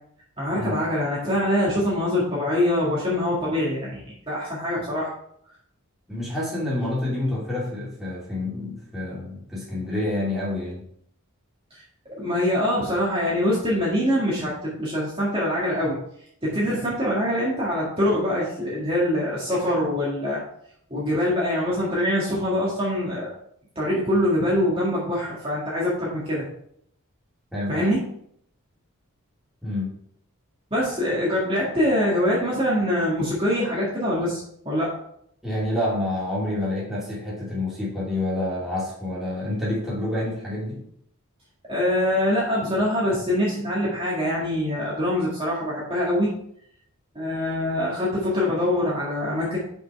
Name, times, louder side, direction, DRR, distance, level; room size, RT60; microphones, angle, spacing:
voice 1, 0.4-5.1 11.7-11.8 12.2-16.0 16.4-20.4 20.9-23.3 23.8-26.5 27.7-28.0 30.7-34.9 41.7-46.3 47.2-49.6, left 1 dB, 25° right, -7 dB, 1.9 m, -24 dB
voice 2, 6.1-10.8 27.5-27.9 29.6-29.9 35.4-40.8, left 1 dB, ahead, -7 dB, 2.5 m, -28 dB
5.7 x 5.5 x 4.7 m, 0.68 s
head